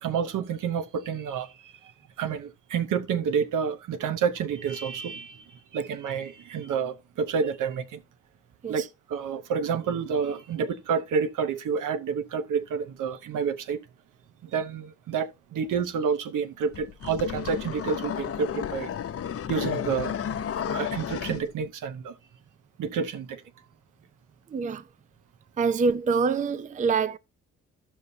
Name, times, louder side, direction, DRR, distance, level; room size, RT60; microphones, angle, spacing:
voice 1, 0.0-1.7 2.2-8.0 8.7-8.8 9.1-13.8 14.4-18.9 19.5-20.1 20.7-22.2 22.8-23.4, right 6 dB, 75° right, 0.8 m, -29 dB
sound 1, 16.7-21.4, left 8 dB, 45° left, 0.7 m, -32 dB
voice 2, 24.5-24.8 25.6-27.2, right 5 dB, 25° right, 0.4 m, -25 dB
14.0 x 5.5 x 2.7 m
cardioid pair, 70°, 32 cm